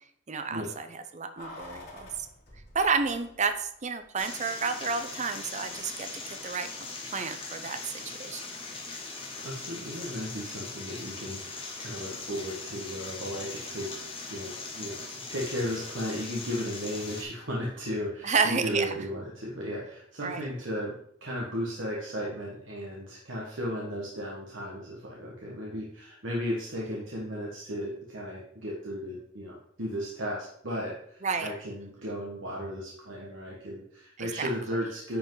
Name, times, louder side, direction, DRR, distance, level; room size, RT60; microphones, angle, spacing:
voice 1, 0.3-2.1 2.7-6.1 6.4-6.7 7.1-7.8 8.2-8.4 18.2-18.9 20.2-20.4 31.2-31.5 34.2-34.5, right 5 dB, 40° right, 8 dB, 0.7 m, -30 dB
Keys jangling, 1.4-3.7 4.0-4.1, left 2 dB, 60° left, 3.9 m, -47 dB
sound 1, 4.2-17.2, left 3 dB, 30° left, 1.9 m, -40 dB
voice 2, 9.4-15.0 15.3-35.2, equal, 90° right, -4 dB, 1.6 m, -35 dB
10.0 x 5.2 x 4.0 m, 0.69 s
head